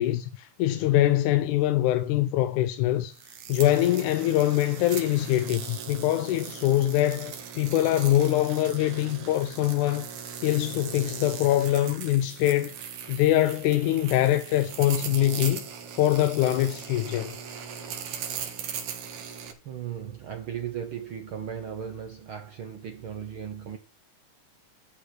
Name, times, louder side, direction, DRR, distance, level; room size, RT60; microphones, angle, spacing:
voice 1, 0.0-3.2 3.5-10.1 10.4-12.7 13.1-15.6 16.0-17.4, left 14 dB, 80° left, 2.0 m, -24 dB
sound 1, 3.1-19.5, right 7 dB, 80° right, 3.1 m, -39 dB
voice 2, 13.2-13.6 19.6-23.8, right 8 dB, 65° right, 1.3 m, -37 dB
11.5 x 5.1 x 6.1 m
omnidirectional pair, 3.6 m